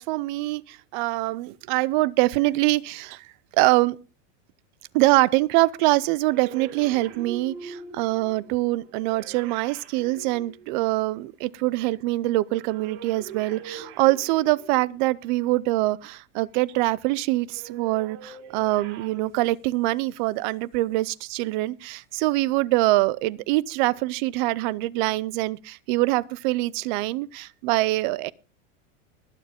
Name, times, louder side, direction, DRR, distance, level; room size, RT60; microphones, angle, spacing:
voice 1, 0.0-3.3 3.5-4.0 4.9-28.3, right 19 dB, 40° right, 0.5 m, -24 dB
sound 1, 6.2-11.2 12.5-15.1 17.5-19.3, right 6 dB, 55° right, 5.2 m, -42 dB
21.0 x 7.2 x 3.6 m
supercardioid pair, 155°, 38 cm